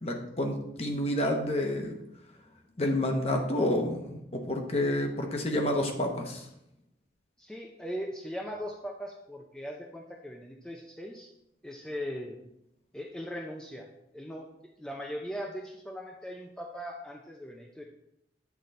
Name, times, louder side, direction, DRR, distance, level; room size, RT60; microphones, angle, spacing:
voice 1, 0.0-2.0 2.8-6.5, left 1 dB, 35° left, 3 dB, 0.9 m, -29 dB
voice 2, 7.4-11.3 11.6-12.5 12.9-13.9 14.1-14.5 14.8-17.8, equal, 5° left, 0 dB, 0.4 m, -39 dB
8.3 x 3.9 x 4.2 m, 0.80 s
head